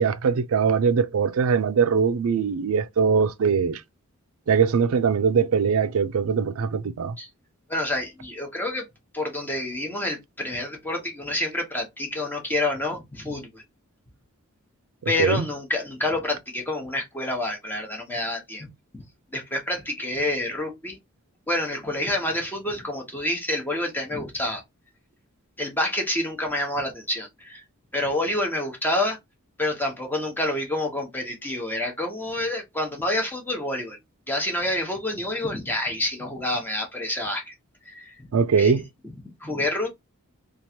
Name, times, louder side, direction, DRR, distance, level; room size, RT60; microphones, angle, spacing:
voice 1, 0.0-3.8 4.5-7.2 15.2-15.5 38.3-38.8, right 6 dB, 75° right, 0.4 m, -21 dB
voice 2, 7.7-8.9 9.1-13.6 15.1-18.7 18.9-19.0 19.3-21.0 21.5-24.6 25.6-27.6 27.9-29.2 29.6-34.0 34.3-37.5 37.8-38.2 38.6-38.7 39.4-39.9, left 1 dB, 10° left, 0.8 m, -28 dB
3.1 x 2.4 x 2.7 m
head